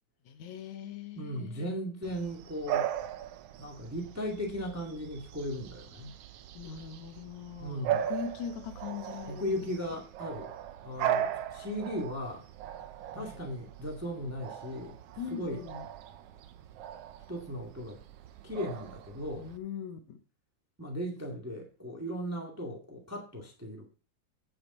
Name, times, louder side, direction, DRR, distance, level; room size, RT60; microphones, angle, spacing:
voice 1, 0.3-1.7 6.5-9.7 13.2-13.5 15.2-15.9 19.4-20.2, left 8 dB, 75° left, 2.2 m, -41 dB
voice 2, 1.1-2.9 3.6-6.1 7.6-8.1 9.3-10.5 10.8-12.5 13.1-15.0 15.3-15.6 17.3-18.0 18.4-19.5 20.8-23.9, equal, 5° right, 1.2 m, -37 dB
Bark / Bird vocalization bird call bird song, 2.0-19.6, right 10 dB, 75° right, 1.4 m, -38 dB
8.8 x 8.0 x 4.2 m
omnidirectional pair, 3.4 m